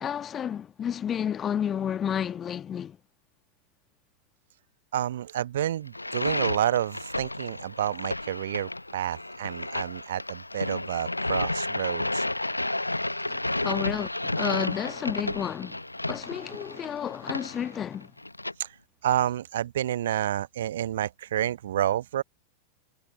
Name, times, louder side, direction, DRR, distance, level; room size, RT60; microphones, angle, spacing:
voice 1, 0.0-3.0 13.3-15.8 16.1-18.1, left 9 dB, 25° left, 1.5 m, -31 dB
voice 2, 4.9-12.2 18.6-18.7 19.0-22.2, right 11 dB, 60° right, 1.0 m, -29 dB
sound 1, 5.9-18.5, left 2 dB, 85° left, 0.9 m, -32 dB
figure-of-eight pair, 90°, 0 cm